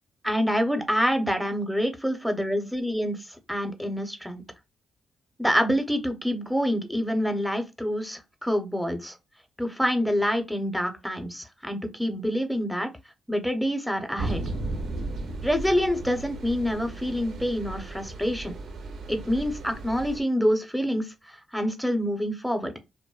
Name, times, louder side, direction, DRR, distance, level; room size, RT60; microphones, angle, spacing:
voice 1, 0.2-3.2 3.5-4.4 5.4-9.1 9.6-12.9 13.3-14.4 15.4-18.5 19.1-21.1 21.5-22.7, equal, ahead, 0.7 m, -26 dB
sound 1, 14.2-20.2, right 2 dB, 80° right, 0.5 m, -35 dB
2.5 x 2.1 x 2.3 m
supercardioid pair, 50°, 0 cm